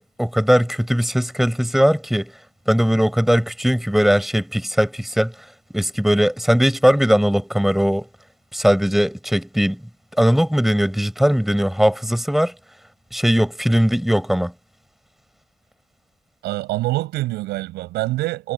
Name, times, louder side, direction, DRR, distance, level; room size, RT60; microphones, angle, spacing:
voice 1, 0.0-2.3 2.7-5.3 5.7-8.1 8.5-9.8 10.2-12.5 13.1-14.5, equal, ahead, 6.6 m, -19 dB
voice 2, 16.4-18.5, right 18 dB, 85° right, 7.9 m, -25 dB
cardioid pair, 110°, 17 cm